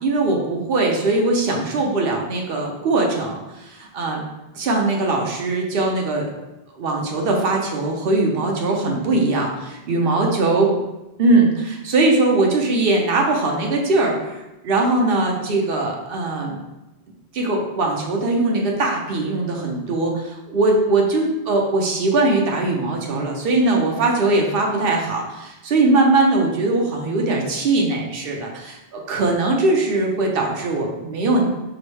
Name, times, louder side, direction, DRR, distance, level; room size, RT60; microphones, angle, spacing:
voice 1, 0.0-4.2 4.5-6.3 6.8-10.7 11.2-16.6 17.3-31.4, right 2 dB, 60° right, 0 dB, 0.9 m, -20 dB
4.8 x 2.1 x 4.6 m, 0.99 s
omnidirectional pair, 1.2 m